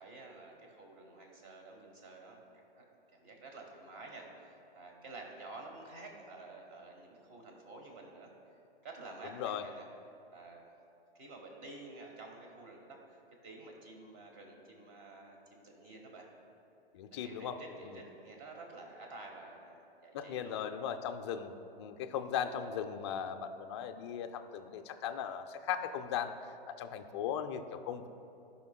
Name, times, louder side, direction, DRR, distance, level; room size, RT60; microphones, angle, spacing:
voice 1, 0.0-2.8 3.1-8.3 8.8-9.8 10.3-10.7 11.1-13.2 13.4-16.2 17.2-20.6, right 2 dB, 35° right, 1 dB, 1.6 m, -50 dB
voice 2, 16.9-17.6 17.8-18.0 20.1-28.1, left 8 dB, 30° left, 7 dB, 0.4 m, -38 dB
15.0 x 5.7 x 2.3 m, 2.7 s
hypercardioid pair, 130°, 30 cm